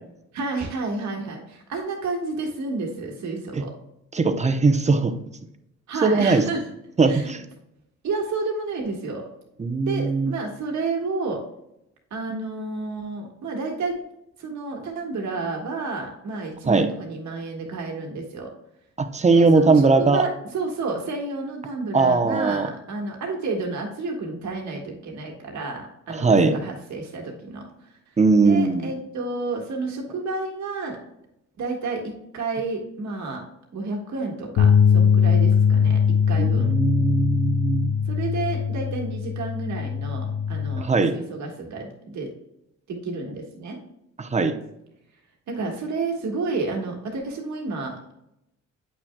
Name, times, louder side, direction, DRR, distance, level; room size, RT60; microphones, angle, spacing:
voice 1, 0.3-3.7 5.9-6.7 7.0-7.3 8.0-9.3 9.8-11.5 12.1-13.9 14.4-18.5 19.3-28.0 28.4-31.0 31.6-33.4 33.7-36.7 38.1-42.3 42.9-43.8 45.5-48.1, right 3 dB, 70° right, 0 dB, 1.7 m, -30 dB
voice 2, 4.1-5.1 6.0-6.4 7.0-7.4 9.6-10.3 16.7-16.9 19.0-20.2 21.9-22.7 26.1-26.5 28.2-28.9 36.4-38.0 40.8-41.1 44.2-44.5, right 3 dB, 25° right, 7 dB, 0.8 m, -19 dB
sound 1, 34.6-40.8, left 7 dB, 65° left, 0.7 m, -21 dB
8.3 x 6.1 x 2.3 m, 0.82 s
cardioid pair, 90°, 30 cm